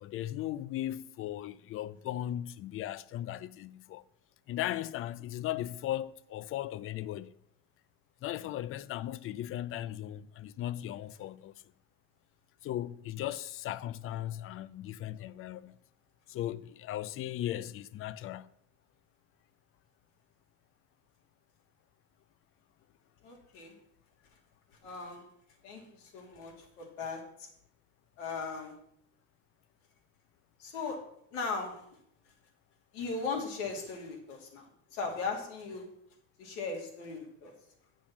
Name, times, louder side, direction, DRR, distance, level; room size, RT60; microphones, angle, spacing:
voice 1, 0.0-4.0 4.5-7.3 8.2-11.5 12.6-15.7 16.3-18.5, left 13 dB, 35° left, 0.4 m, -37 dB
voice 2, 23.2-23.7 24.8-25.2 25.6-27.5 28.2-28.7 30.6-31.0 31.3-31.8 32.9-35.9 36.4-37.5, left 4 dB, 75° left, 2.8 m, -38 dB
7.6 x 6.9 x 5.9 m
supercardioid pair, 105°, 38 cm